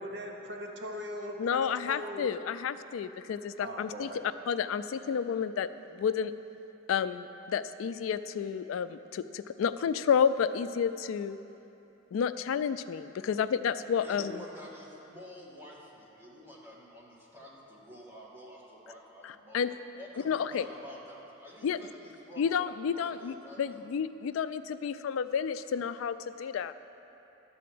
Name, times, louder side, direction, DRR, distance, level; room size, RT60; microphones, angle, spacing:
voice 1, 0.0-2.3 3.6-4.2, equal, 60° right, 1 dB, 0.9 m, -40 dB
voice 2, 1.4-4.1 4.5-5.7 5.9-6.3 6.9-11.4 12.1-14.4 19.2-19.7 20.3-20.6 21.6-21.8 22.4-26.7, left 7 dB, 85° left, 13 dB, 0.3 m, -30 dB
voice 3, 14.0-19.6 20.0-23.8, equal, 10° right, -6 dB, 1.5 m, -49 dB
12.0 x 4.2 x 7.7 m, 3.0 s
head